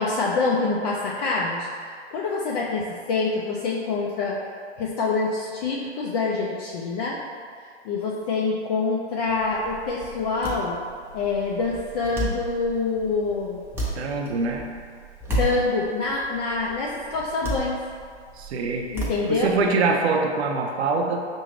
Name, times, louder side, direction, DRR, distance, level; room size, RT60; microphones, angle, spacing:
voice 1, 0.0-1.7 2.1-4.4 4.8-7.2 7.8-10.8 11.1-13.6 15.4-17.8 18.9-19.5, left 3 dB, 35° left, -4 dB, 0.4 m, -26 dB
sound 1, 9.3-19.8, right 1 dB, 5° right, 0.6 m, -34 dB
voice 2, 13.9-14.7 18.3-18.9 19.3-21.2, right 4 dB, 65° right, 2 dB, 0.6 m, -24 dB
5.6 x 2.6 x 3.1 m, 2.1 s
hypercardioid pair, 115°, 34 cm